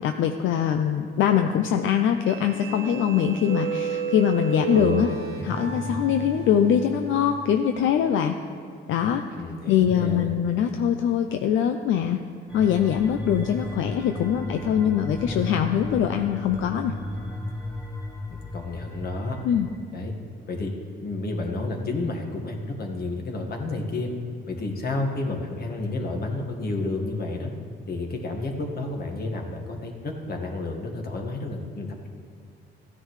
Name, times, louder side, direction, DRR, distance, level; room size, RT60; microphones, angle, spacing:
voice 1, 0.0-5.1 5.4-8.4 8.9-9.2 9.7-12.2 12.5-17.0 19.4-19.7, left 9 dB, 80° left, 6 dB, 0.5 m, -23 dB
sound 1, 2.2-7.5, right 4 dB, 90° right, 1.9 m, -32 dB
voice 2, 4.7-5.6 9.3-10.3 18.3-19.4 19.9-20.1 20.5-20.7 21.0-24.1 24.5-27.5 27.9-32.1, left 2 dB, 50° left, 2 dB, 1.6 m, -31 dB
sound 2, 12.5-19.8, left 2 dB, 30° left, 2.4 m, -35 dB
14.5 x 9.8 x 3.2 m, 2.3 s
cardioid pair, 90°, 20 cm